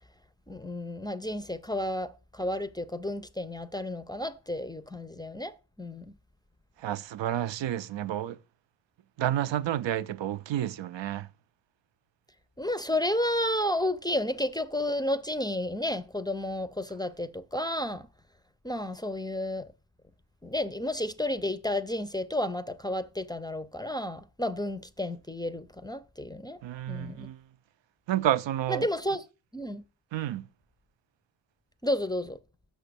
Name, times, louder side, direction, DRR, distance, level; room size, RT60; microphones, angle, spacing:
voice 1, 0.5-6.1 12.6-18.1 18.6-19.7 20.4-26.6 26.9-27.3 28.7-29.2 29.5-29.8 31.8-32.4, left 1 dB, 10° left, 0.4 m, -31 dB
voice 2, 6.8-8.4 9.2-11.3 26.6-27.4 28.1-28.9 30.1-30.4, right 12 dB, 90° right, 0.5 m, -30 dB
6.3 x 5.0 x 6.8 m
wide cardioid pair, 105°, 43 cm